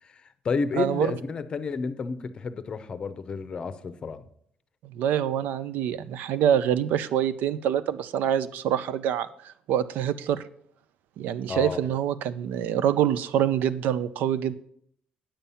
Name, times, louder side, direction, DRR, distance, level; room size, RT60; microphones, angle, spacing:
voice 1, 0.0-4.2 11.5-11.8, left 4 dB, 35° left, 13 dB, 0.6 m, -31 dB
voice 2, 0.8-1.1 4.8-10.4 11.2-14.5, right 10 dB, 80° right, 14 dB, 0.5 m, -26 dB
8.9 x 7.2 x 5.5 m, 0.66 s
cardioid pair, 160°, 3 cm